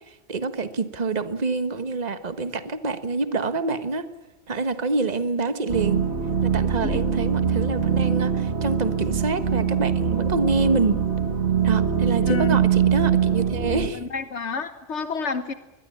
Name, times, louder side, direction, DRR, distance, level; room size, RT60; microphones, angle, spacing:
voice 1, 0.1-4.1 4.5-6.0 6.4-11.0 11.6-14.0, right 3 dB, 35° right, 11 dB, 1.5 m, -26 dB
sound 1, 5.7-13.9, right 7 dB, 65° right, 2.2 m, -23 dB
voice 2, 12.2-12.6 13.9-15.5, left 4 dB, 70° left, 11 dB, 1.4 m, -29 dB
23.0 x 21.5 x 8.5 m, 1.0 s
omnidirectional pair, 1.2 m